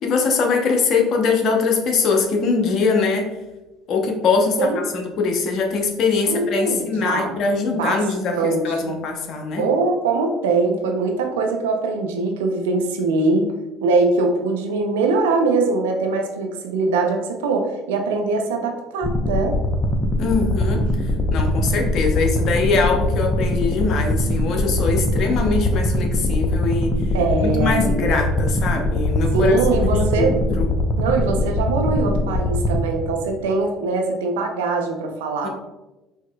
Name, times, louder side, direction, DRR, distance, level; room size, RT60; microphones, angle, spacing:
voice 1, 0.0-3.3 3.9-9.7 20.2-20.8 21.3-26.9 27.6-29.5 29.9-30.7 35.4-35.5, left 4 dB, 55° left, 2 dB, 0.7 m, -22 dB
voice 2, 6.3-7.3 7.7-8.0 8.3-9.0 9.6-13.5 13.8-19.6 27.1-28.1 29.3-30.4 31.0-35.5, right 3 dB, 85° right, 3 dB, 0.5 m, -22 dB
sound 1, 19.0-33.4, left 1 dB, 20° left, 0.7 m, -22 dB
4.5 x 2.8 x 2.2 m, 1.0 s
hypercardioid pair, 70°, 0 cm